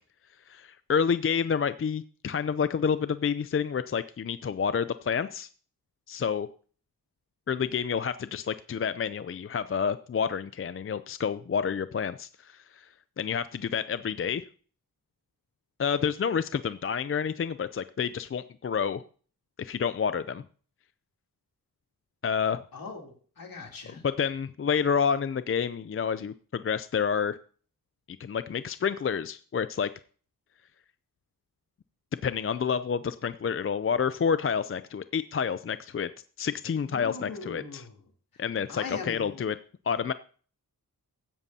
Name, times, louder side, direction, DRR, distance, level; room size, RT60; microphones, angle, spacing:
voice 1, 0.5-5.5 6.1-6.5 7.5-12.9 13.2-14.4 15.8-19.0 19.6-20.4 22.2-22.6 24.0-27.4 28.2-29.9 32.2-36.1 36.4-37.8 38.4-39.6 39.9-40.1, left 6 dB, 40° left, 13 dB, 0.4 m, -29 dB
voice 2, 22.7-24.0 36.8-38.0 38.7-39.4, left 4 dB, 70° left, 1 dB, 3.1 m, -40 dB
15.5 x 10.5 x 2.8 m, 0.43 s
wide cardioid pair, 115°, 36 cm